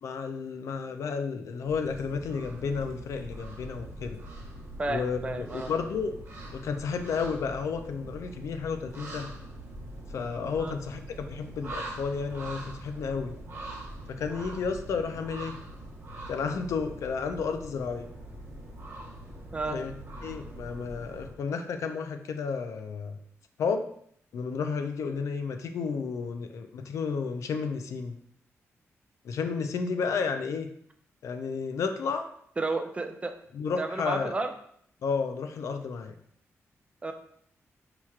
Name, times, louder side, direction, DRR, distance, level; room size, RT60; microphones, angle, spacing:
voice 1, 0.0-4.2 4.9-6.1 6.5-9.3 10.1-13.3 14.1-15.6 16.3-18.1 19.7-19.9 20.2-23.2 23.6-23.9 24.3-28.2 29.2-30.7 31.2-32.3 33.5-34.3 35.0-36.1, left 5 dB, 75° left, 7 dB, 0.4 m, -32 dB
sound 1, 1.6-21.3, right 1 dB, 50° right, 0.9 m, -43 dB
voice 2, 4.8-5.7 10.6-10.8 14.5-14.6 19.5-19.8 32.6-33.3 33.8-34.5 37.0-37.1, right 3 dB, 25° right, 6 dB, 0.3 m, -32 dB
4.5 x 2.9 x 2.4 m, 0.67 s
wide cardioid pair, 120°, 5 cm